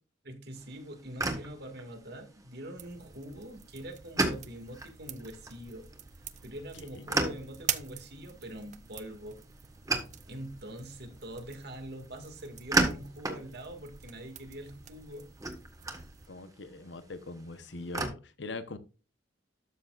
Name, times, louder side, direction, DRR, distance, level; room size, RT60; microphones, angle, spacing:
voice 1, 0.2-5.9 6.4-9.4 10.3-15.3, right 1 dB, 60° right, 2.2 m, -44 dB
sound 1, 0.6-18.1, right 2 dB, 20° right, 1.7 m, -37 dB
sound 2, 2.8-16.3, right 9 dB, 40° right, 0.7 m, -45 dB
voice 2, 6.7-7.1 16.3-18.8, left 3 dB, 75° left, 1.1 m, -42 dB
13.0 x 7.1 x 2.5 m
head